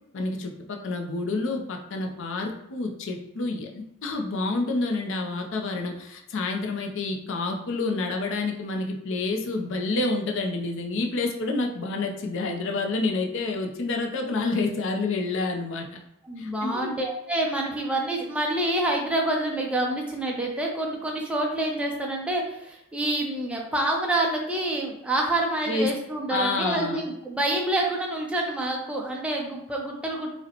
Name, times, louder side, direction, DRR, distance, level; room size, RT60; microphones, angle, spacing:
voice 1, 0.1-15.9 16.4-16.9 25.7-25.9 26.3-27.0, left 3 dB, 60° left, 2 dB, 0.5 m, -28 dB
voice 2, 16.2-30.3, right 1 dB, 5° right, -1 dB, 0.4 m, -27 dB
5.0 x 2.1 x 2.8 m, 0.83 s
head